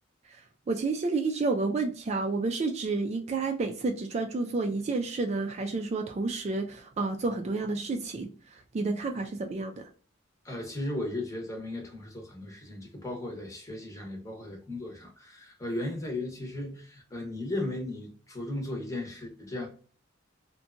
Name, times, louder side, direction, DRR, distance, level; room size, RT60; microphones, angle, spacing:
voice 1, 0.7-9.9, right 3 dB, 35° right, 0.3 m, -30 dB
voice 2, 10.4-19.7, left 1 dB, 15° left, 0.8 m, -36 dB
2.8 x 2.2 x 2.4 m
head